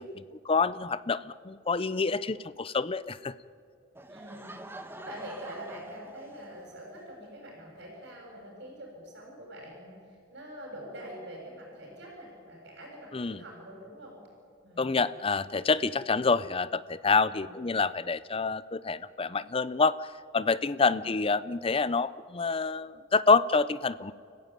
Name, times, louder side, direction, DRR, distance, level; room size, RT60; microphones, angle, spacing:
voice 1, 0.0-3.3 13.1-13.4 14.8-24.1, left 4 dB, 30° left, 16 dB, 0.5 m, -27 dB
Laughter / Crowd, 4.0-6.8, right 1 dB, 10° right, 1.2 m, -46 dB
voice 2, 4.1-4.6 4.9-14.1 14.6-15.0 17.2-17.6 20.8-21.0, right 1 dB, 55° right, -3 dB, 7.1 m, -45 dB
30.0 x 15.0 x 9.2 m, 2.4 s
head